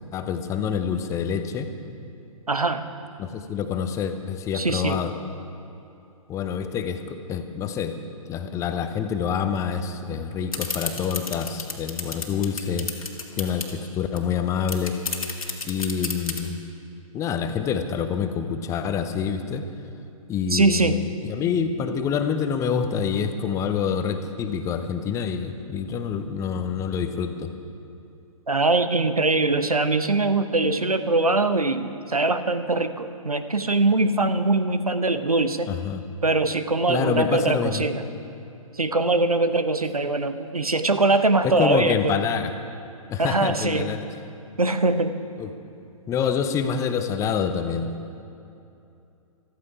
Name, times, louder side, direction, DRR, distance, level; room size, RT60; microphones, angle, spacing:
voice 1, 0.1-1.7 3.2-5.1 6.3-7.9 8.3-12.9 13.4-15.0 15.6-16.6 17.1-19.6 20.3-27.5 35.7-36.0 36.9-37.8 41.4-42.5 43.1-44.1 45.4-45.5 46.1-47.9, left 7 dB, 15° left, 8 dB, 0.7 m, -27 dB
voice 2, 2.5-2.8 4.5-5.0 20.5-21.0 28.5-35.7 36.2-38.0 38.7-42.1 43.2-43.9 44.6-45.2, right 2 dB, 85° right, 11 dB, 0.9 m, -22 dB
sound 1, 10.5-13.7 14.2-14.3 14.5-16.4, left 4 dB, 75° left, 1.9 m, -30 dB
15.0 x 13.5 x 4.9 m, 2.7 s
figure-of-eight pair, 120°, 18 cm